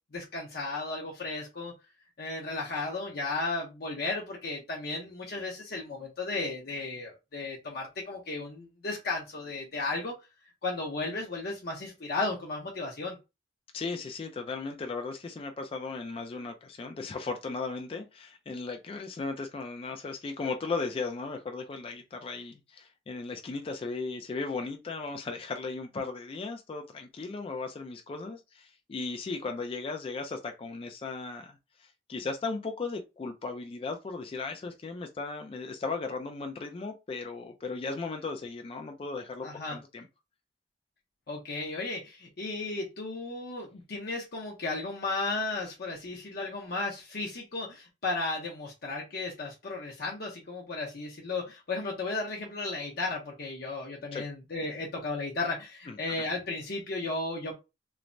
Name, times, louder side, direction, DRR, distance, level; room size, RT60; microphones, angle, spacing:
voice 1, 0.1-1.7 2.2-10.1 10.6-13.2 39.4-39.8 41.3-57.5, left 3 dB, 60° left, 0.7 m, -34 dB
voice 2, 13.7-40.1 54.1-54.2 55.9-56.0, left 4 dB, 30° left, 0.3 m, -36 dB
3.1 x 2.0 x 2.5 m
head